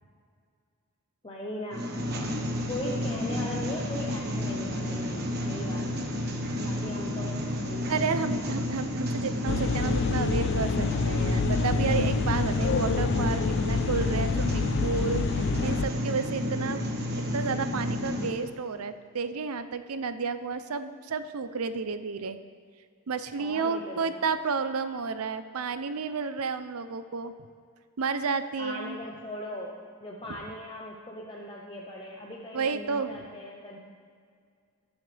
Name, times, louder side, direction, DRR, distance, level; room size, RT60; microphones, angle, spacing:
voice 1, 1.2-6.0 6.6-8.0 23.4-24.2 28.6-33.8, left 1 dB, 25° left, -2 dB, 0.8 m, -39 dB
sound 1, 1.7-18.3, left 1 dB, 50° right, 1.3 m, -31 dB
voice 2, 7.9-16.9 17.3-22.4 23.1-27.3 28.0-29.0 32.5-33.1, right 5 dB, 90° right, 11 dB, 0.6 m, -31 dB
sound 2, 9.5-15.9, left 5 dB, 55° left, 0.3 m, -28 dB
20.5 x 7.3 x 3.4 m, 2.1 s
head